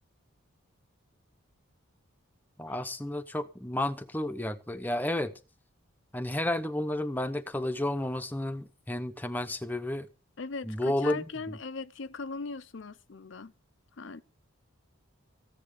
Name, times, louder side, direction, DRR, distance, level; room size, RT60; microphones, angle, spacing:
voice 1, 2.6-5.3 6.1-10.1 10.6-11.3, left 1 dB, 10° left, 0.9 m, -31 dB
voice 2, 10.4-13.5 14.0-14.2, left 4 dB, 60° left, 0.6 m, -39 dB
15.0 x 10.0 x 5.0 m
head